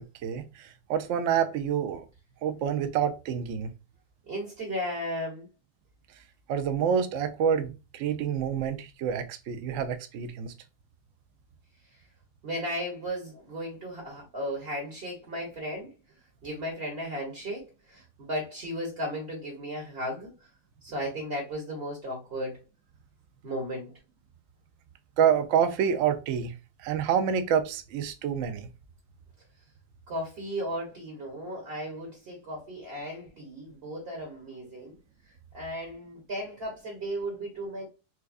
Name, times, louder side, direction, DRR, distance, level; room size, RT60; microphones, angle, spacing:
voice 1, 0.2-2.0 2.4-3.7 6.5-10.5 25.2-26.5 26.8-28.7, right 8 dB, 70° right, 0.7 m, -27 dB
voice 2, 4.3-5.5 12.4-15.9 16.4-20.3 20.8-22.6 23.4-23.9 30.1-34.9 35.5-37.9, equal, 40° right, 1.4 m, -35 dB
4.6 x 2.2 x 2.5 m
omnidirectional pair, 1.8 m